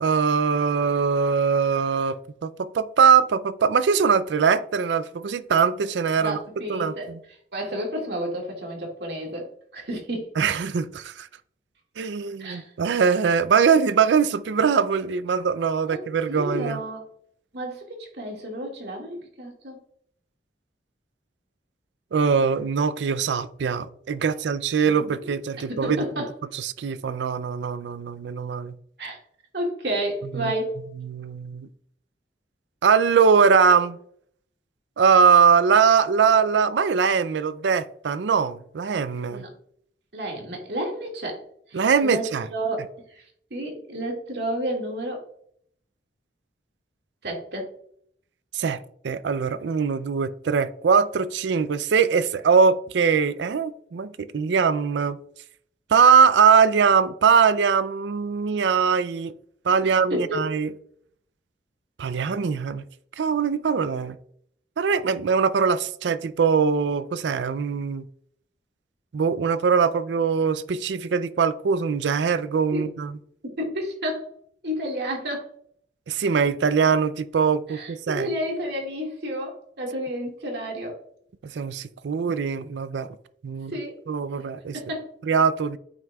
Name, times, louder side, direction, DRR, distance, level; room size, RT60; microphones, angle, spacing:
voice 1, 0.0-2.2 2.4-6.4 6.7-7.2 10.4-11.3 12.0-16.8 22.1-26.0 26.5-28.7 30.3-30.5 31.0-31.7 32.8-34.0 35.0-39.4 41.7-42.5 48.5-48.8 49.0-55.2 55.9-59.3 59.6-60.7 62.0-62.8 63.2-64.2 64.8-68.0 69.1-73.1 76.1-78.3 81.5-83.2 83.4-83.8 84.1-84.8 85.2-85.8, right 6 dB, 85° right, 0.4 m, -21 dB
voice 2, 6.2-7.1 7.5-10.3 12.4-12.7 15.9-17.0 17.5-19.8 25.7-26.3 29.0-29.2 29.5-30.8 39.3-39.5 40.1-41.4 41.7-42.8 43.1-43.2 43.5-45.2 47.2-47.7 59.8-60.4 72.7-72.9 73.6-74.3 74.6-75.5 77.7-81.0 83.7-84.0 84.7-85.1, equal, 70° right, 1.9 m, -31 dB
8.9 x 6.1 x 2.3 m
head